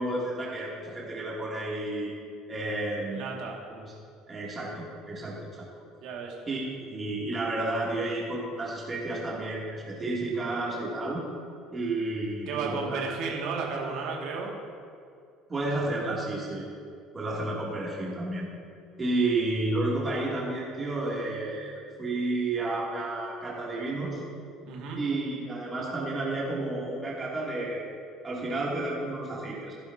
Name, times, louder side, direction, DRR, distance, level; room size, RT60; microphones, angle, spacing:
voice 1, 0.0-2.1 2.5-3.2 3.7-3.9 4.3-5.7 6.5-11.2 11.7-13.0 15.5-16.7 17.1-18.5 19.0-24.2 25.0-27.8 28.2-29.7, right 2 dB, 30° right, -5 dB, 2.8 m, -31 dB
voice 2, 3.1-3.6 6.0-6.4 12.5-14.6 24.7-25.0, right 4 dB, 60° right, 0 dB, 2.2 m, -33 dB
15.5 x 11.5 x 2.9 m, 2.4 s
figure-of-eight pair, 60°, 0 cm